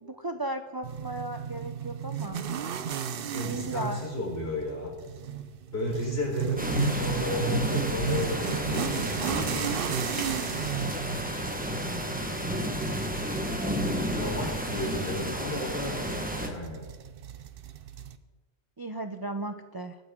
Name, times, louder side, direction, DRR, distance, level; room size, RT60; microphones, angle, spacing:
voice 1, 0.0-2.4 3.5-4.0 18.8-20.0, right 2 dB, 30° right, 7 dB, 0.4 m, -35 dB
sound 1, 0.8-18.2, right 8 dB, 60° right, 0.8 m, -35 dB
voice 2, 3.3-4.9 5.7-10.4 14.1-16.1 16.4-16.8, left 1 dB, 65° left, -2 dB, 4.3 m, -33 dB
sound 2, 6.6-16.5, equal, 10° right, 1.2 m, -31 dB
23.0 x 9.2 x 3.7 m, 1.3 s
omnidirectional pair, 1.1 m